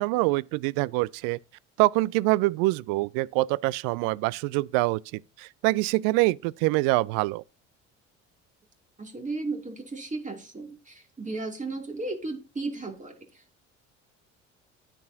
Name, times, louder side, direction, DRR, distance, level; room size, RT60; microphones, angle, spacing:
voice 1, 0.0-1.4 1.8-7.4, right 21 dB, 60° right, 0.5 m, -25 dB
voice 2, 9.0-13.6, right 3 dB, 20° right, 2.5 m, -35 dB
9.3 x 9.1 x 2.7 m
hypercardioid pair, 55°, 37 cm